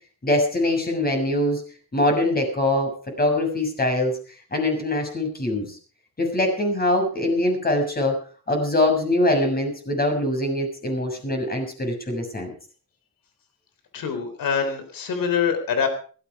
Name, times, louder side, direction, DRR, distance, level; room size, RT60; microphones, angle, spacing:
voice 1, 0.2-1.6 1.9-2.9 3.2-4.1 4.5-5.8 6.2-8.2 8.5-12.5, left 1 dB, 25° left, 3 dB, 6.6 m, -23 dB
voice 2, 13.9-15.9, left 6 dB, 70° left, 8 dB, 3.8 m, -24 dB
16.5 x 14.5 x 4.8 m, 0.41 s
cardioid pair, 105°, 35 cm